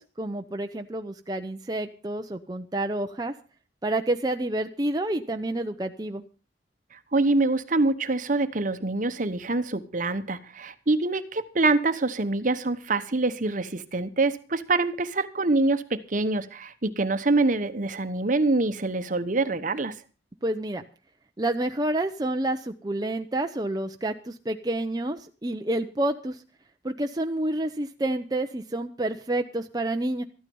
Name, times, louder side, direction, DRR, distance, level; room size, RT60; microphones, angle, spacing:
voice 1, 0.0-3.4 3.8-6.2 20.4-20.8 21.4-26.4 26.8-30.2, right 1 dB, 25° right, 5 dB, 0.7 m, -29 dB
voice 2, 6.9-20.0, right 2 dB, 45° right, 11 dB, 1.0 m, -25 dB
14.0 x 12.5 x 5.4 m, 0.35 s
head